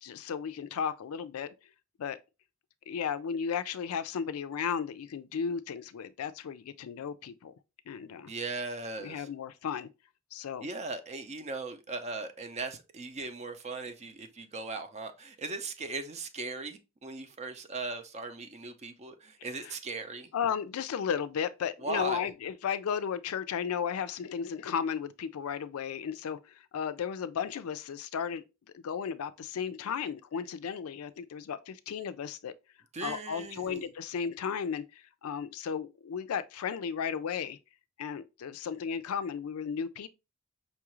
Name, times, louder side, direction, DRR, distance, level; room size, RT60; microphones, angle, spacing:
voice 1, 0.0-1.5 2.0-2.2 2.9-7.5 7.9-8.3 9.0-9.9 10.3-10.7 19.6-19.8 20.3-28.4 28.7-32.5 33.0-37.6 38.0-40.1, left 7 dB, 80° left, 0.4 m, -34 dB
voice 2, 8.3-9.3 10.6-20.3 21.8-22.3 32.9-33.9, right 3 dB, 30° right, 0.5 m, -38 dB
5.4 x 2.4 x 2.9 m
head